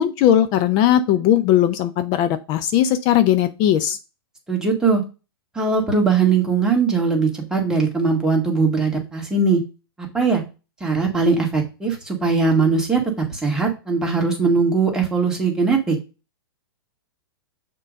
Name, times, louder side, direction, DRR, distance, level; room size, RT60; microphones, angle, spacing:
voice 1, 0.0-4.0, left 11 dB, 35° left, 11 dB, 0.6 m, -18 dB
voice 2, 4.5-5.0 5.6-9.6 10.1-10.4 10.8-16.0, right 4 dB, 5° right, -1 dB, 2.0 m, -20 dB
6.5 x 3.8 x 5.2 m, 0.30 s
hypercardioid pair, 130°, 13 cm